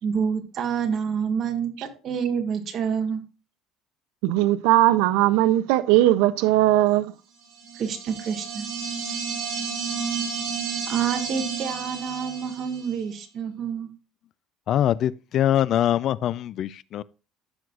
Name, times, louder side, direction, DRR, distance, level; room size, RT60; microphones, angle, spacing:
voice 1, 0.0-3.2 7.8-8.7 9.0-9.3 10.9-13.9, right 6 dB, 40° right, 1.6 m, -28 dB
voice 2, 4.2-7.1, right 15 dB, 90° right, 0.4 m, -19 dB
sound 1, 7.6-13.0, right 6 dB, 60° right, 3.8 m, -31 dB
voice 3, 14.7-17.0, left 11 dB, 50° left, 0.4 m, -23 dB
14.0 x 6.3 x 2.4 m
cardioid pair, 140°, 0 cm